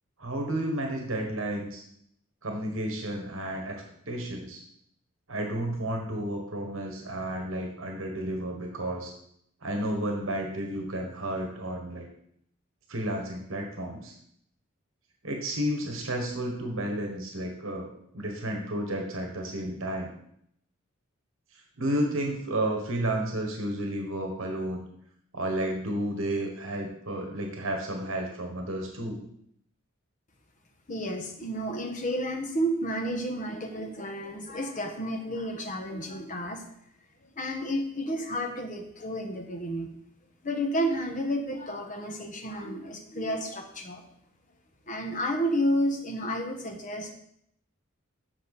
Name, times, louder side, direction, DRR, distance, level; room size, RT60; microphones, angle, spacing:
voice 1, 0.2-1.8 2.4-3.8 4.1-4.6 5.3-9.1 9.6-12.1 12.9-14.1 15.2-20.1 21.8-24.8 25.3-29.2, right 1 dB, 70° right, 2 dB, 1.3 m, -32 dB
voice 2, 30.9-36.7 37.4-39.9 40.4-44.0 44.9-47.1, equal, 35° left, 3 dB, 1.1 m, -31 dB
7.6 x 6.3 x 4.1 m, 0.71 s
head